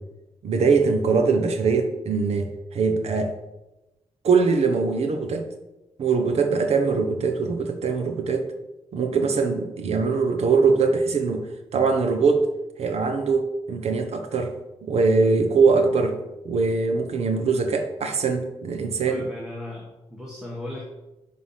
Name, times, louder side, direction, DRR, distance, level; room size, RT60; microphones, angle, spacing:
voice 1, 0.4-3.4 4.2-5.5 6.0-8.5 8.9-11.5 11.7-12.5 12.8-14.5 14.8-16.2 16.4-19.3, right 4 dB, 65° right, 6 dB, 1.1 m, -22 dB
voice 2, 19.1-20.8, left 1 dB, 5° right, -3 dB, 1.5 m, -37 dB
11.0 x 4.1 x 5.7 m, 0.99 s
wide cardioid pair, 155°, 11 cm